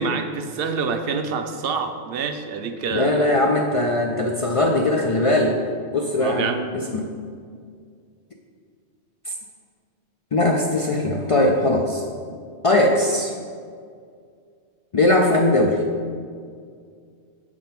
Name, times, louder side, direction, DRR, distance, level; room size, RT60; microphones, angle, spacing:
voice 1, 0.0-3.4 6.2-6.6, right 5 dB, 65° right, 7 dB, 0.7 m, -27 dB
voice 2, 2.9-5.6 5.9-7.1 9.3-9.4 10.3-12.0 12.6-13.3 14.9-15.8, left 1 dB, 60° left, 1 dB, 0.3 m, -20 dB
7.5 x 3.7 x 5.8 m, 2.1 s
omnidirectional pair, 1.2 m